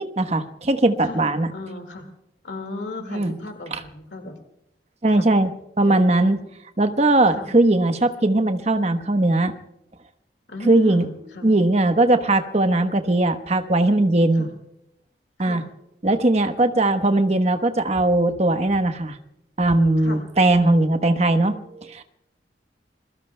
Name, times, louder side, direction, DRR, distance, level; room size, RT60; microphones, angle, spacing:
voice 1, 0.0-1.5 3.1-3.3 3.7-3.8 5.0-5.5 5.8-6.4 6.8-9.5 10.7-11.1 11.4-14.5 15.4-15.6 16.0-19.2 19.6-22.0, right 2 dB, 40° right, 8 dB, 1.0 m, -19 dB
voice 2, 1.5-2.1 2.4-4.3 5.1-5.3 5.8-6.1 7.3-7.5 10.5-11.5 14.3-14.5 15.4-15.6 20.0-20.2, left 2 dB, 90° left, 5 dB, 2.0 m, -36 dB
28.0 x 22.5 x 2.2 m, 0.83 s
head